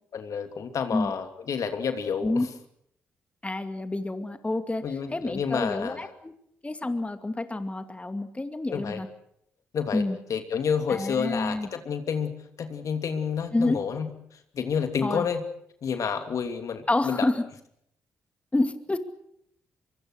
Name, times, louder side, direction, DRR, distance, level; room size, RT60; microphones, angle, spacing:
voice 1, 0.1-2.4 4.8-6.1 8.7-9.0 9.7-10.0 10.3-12.3 12.6-14.1 14.5-15.4 15.8-17.3, left 6 dB, 60° left, 7 dB, 2.9 m, -29 dB
voice 2, 3.4-6.3 6.6-9.1 9.9-10.2 10.9-11.7 13.5-13.8 15.0-15.2 16.9-17.4 18.5-19.0, left 2 dB, 20° left, 9 dB, 2.4 m, -28 dB
24.5 x 24.0 x 6.5 m, 0.71 s
hypercardioid pair, 45°, 6 cm